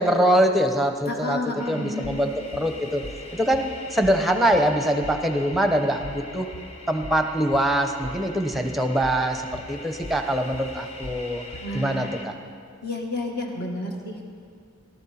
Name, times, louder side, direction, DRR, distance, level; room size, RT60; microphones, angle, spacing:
voice 1, 0.0-1.4 1.7-3.0 3.3-6.5 6.9-11.4 11.7-12.3, right 1 dB, ahead, 5 dB, 0.8 m, -23 dB
voice 2, 1.1-2.2 11.6-12.1 12.8-14.2, left 2 dB, 50° left, 1 dB, 1.7 m, -31 dB
sound 1, 1.6-12.3, left 2 dB, 30° left, 1.0 m, -43 dB
sound 2, 2.0-11.8, left 1 dB, 85° left, 0.8 m, -41 dB
18.5 x 12.5 x 4.3 m, 2.3 s
head